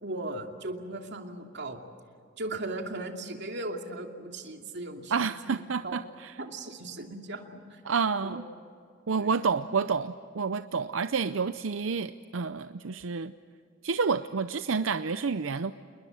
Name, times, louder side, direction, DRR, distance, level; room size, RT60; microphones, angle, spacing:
voice 1, 0.0-1.8 2.4-5.1 5.5-6.0 6.4-7.8 8.2-8.4 9.2-9.3, right 2 dB, 60° right, 3 dB, 2.7 m, -37 dB
voice 2, 5.1-6.3 7.8-8.4 9.1-13.3 13.8-15.7, right 5 dB, 90° right, 11 dB, 0.6 m, -29 dB
28.5 x 21.0 x 8.0 m, 2.3 s
head